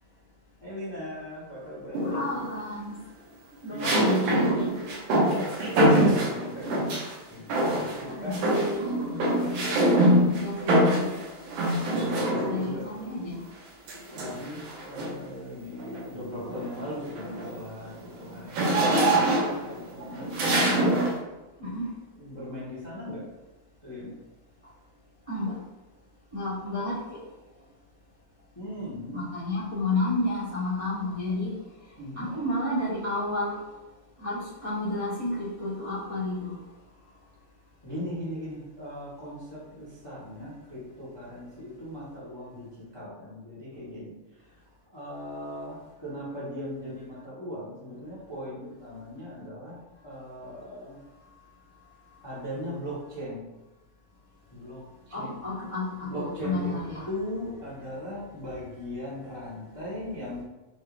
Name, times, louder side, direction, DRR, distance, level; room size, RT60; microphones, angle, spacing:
voice 1, 0.6-2.4 3.7-3.9 4.2-6.8 7.3-8.4 11.9-12.9 14.1-20.9 22.1-23.2 23.8-24.1 28.5-29.2 32.0-32.3 37.8-44.1 44.9-49.7 50.0-51.0 52.2-53.5 54.5-55.6 56.0-56.7 57.0-60.4, left 1 dB, 35° left, -9 dB, 0.4 m, -39 dB
sound 1, 1.9-2.5 3.8-7.1 7.5-8.1 8.3-12.8 13.9-15.3 15.8-16.0 16.4-21.2, right 1 dB, 85° right, 2.6 m, -24 dB
voice 2, 2.0-3.0 3.6-4.6 8.0-8.9 10.3-11.2 12.4-13.4 21.6-21.9 25.3-25.6 26.3-27.2 29.1-31.6 32.0-33.6 34.2-36.6 55.1-57.1, left 2 dB, 50° right, -10 dB, 0.4 m, -31 dB
6.2 x 2.6 x 3.3 m, 1.1 s
omnidirectional pair, 3.4 m